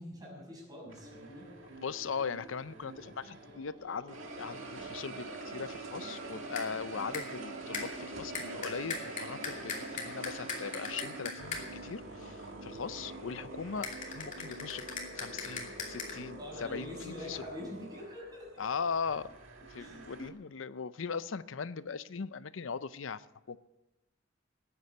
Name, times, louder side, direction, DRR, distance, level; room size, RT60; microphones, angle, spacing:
voice 1, 0.0-1.5 16.4-18.6 19.8-20.3, left 1 dB, 20° right, -2 dB, 6.4 m, -45 dB
sound 1, 0.9-3.7 4.1-20.3, right 2 dB, 80° right, 1.9 m, -46 dB
sound 2, 1.0-16.4, right 2 dB, 60° right, 4.5 m, -51 dB
voice 2, 1.8-13.9 14.1-14.9 15.1-17.4 18.6-19.3 19.7-23.6, left 5 dB, 75° left, 15 dB, 0.6 m, -39 dB
sound 3, 6.1-6.8 7.1-7.4 7.7-11.9 13.8-16.1, left 4 dB, 40° left, 2.7 m, -41 dB
13.5 x 9.6 x 8.5 m, 0.99 s
head